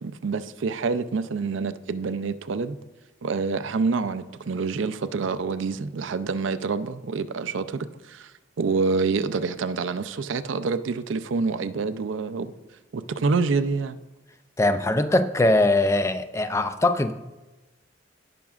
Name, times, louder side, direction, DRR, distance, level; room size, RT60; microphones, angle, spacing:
voice 1, 0.0-2.8 3.2-8.3 8.6-12.5 12.9-14.0, right 4 dB, 80° right, 12 dB, 0.5 m, -27 dB
voice 2, 14.6-17.1, left 2 dB, 15° left, 10 dB, 0.3 m, -21 dB
17.5 x 6.0 x 2.4 m, 1.1 s
head